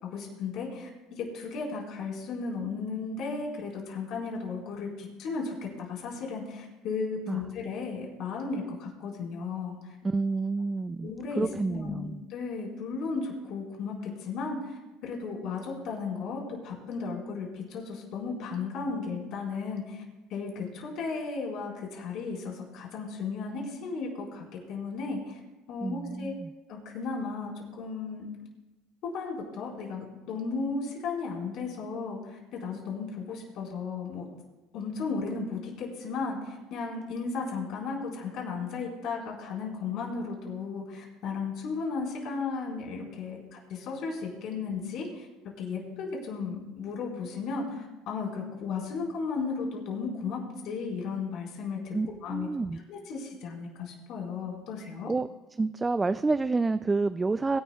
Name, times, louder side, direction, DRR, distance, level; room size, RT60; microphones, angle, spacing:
voice 1, 0.0-10.0 11.0-20.0 20.3-25.4 25.7-26.4 26.7-28.3 29.0-34.2 34.7-45.3 45.6-55.1, left 4 dB, 60° left, -2 dB, 4.4 m, -35 dB
voice 2, 10.0-12.2 25.8-26.5 51.9-52.8 55.1-55.3 55.6-57.6, right 3 dB, 15° right, 12 dB, 0.3 m, -29 dB
22.5 x 11.0 x 2.3 m, 1.1 s
supercardioid pair, 110°, 0 cm